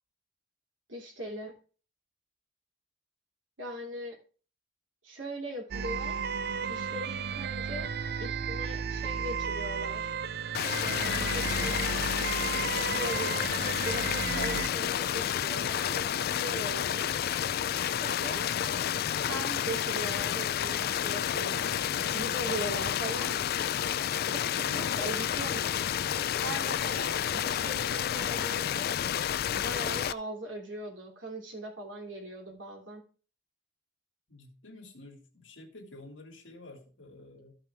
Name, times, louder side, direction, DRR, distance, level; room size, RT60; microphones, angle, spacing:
voice 1, 0.9-1.5 3.6-4.1 5.0-6.2 6.7-7.9 8.2-10.1 10.8-12.0 12.9-17.1 17.9-18.5 19.2-21.8 22.1-23.3 24.2-25.9 26.4-29.0 29.5-33.0, right 1 dB, 90° right, 1 dB, 3.1 m, -40 dB
sound 1, 5.7-14.7, right 6 dB, 55° right, 0.4 m, -34 dB
sound 2, 10.5-30.1, left 10 dB, 55° left, 0.3 m, -30 dB
voice 2, 34.3-37.6, left 2 dB, 75° left, 2 dB, 2.3 m, -50 dB
13.5 x 5.6 x 3.5 m, 0.38 s
head